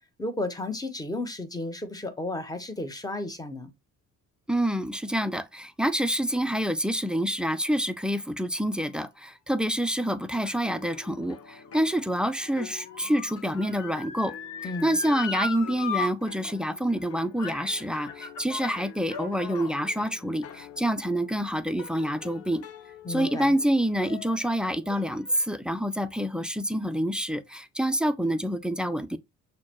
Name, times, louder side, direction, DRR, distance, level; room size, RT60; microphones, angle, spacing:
voice 1, 0.2-3.7 14.6-15.0 23.0-23.6, left 2 dB, 10° left, 0.8 m, -33 dB
voice 2, 4.5-14.3 14.8-22.6 23.1-29.2, equal, 5° right, 0.3 m, -27 dB
sound 1, 10.3-25.5, left 7 dB, 50° left, 0.6 m, -47 dB
Motor vehicle (road) / Siren, 11.0-16.1 16.4-16.5 17.4-17.7 18.1-19.7 20.4-20.5, left 4 dB, 80° left, 1.1 m, -36 dB
6.2 x 2.1 x 2.9 m
cardioid pair, 90°, 30 cm